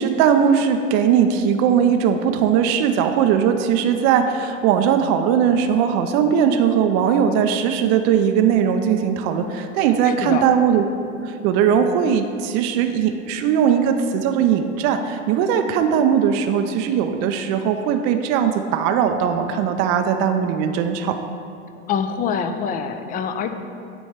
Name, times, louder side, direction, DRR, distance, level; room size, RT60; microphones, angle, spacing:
voice 1, 0.0-10.8 11.2-21.2, right 8 dB, 40° right, 6 dB, 0.4 m, -19 dB
voice 2, 9.8-10.5 21.9-23.5, left 7 dB, 25° left, 8 dB, 0.4 m, -25 dB
7.9 x 3.1 x 5.8 m, 2.5 s
hypercardioid pair, 100°, 37 cm